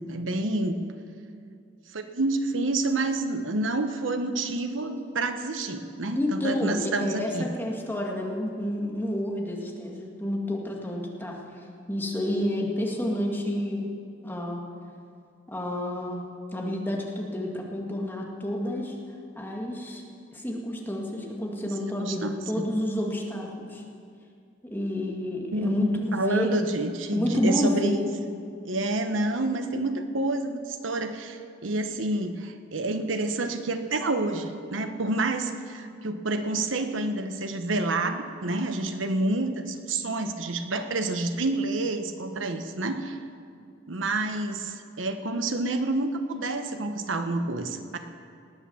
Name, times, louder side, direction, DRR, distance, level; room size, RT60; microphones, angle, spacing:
voice 1, 0.1-0.8 1.9-7.5 22.0-22.7 25.5-28.1 28.6-43.2 43.9-48.0, right 2 dB, 90° right, 7 dB, 1.1 m, -28 dB
voice 2, 6.2-11.4 11.9-13.9 14.2-14.6 15.5-16.2 16.5-19.0 19.3-20.0 20.3-23.8 24.6-26.5 27.1-28.0, left 1 dB, 10° left, -1 dB, 2.0 m, -29 dB
19.0 x 8.7 x 7.2 m, 2.4 s
head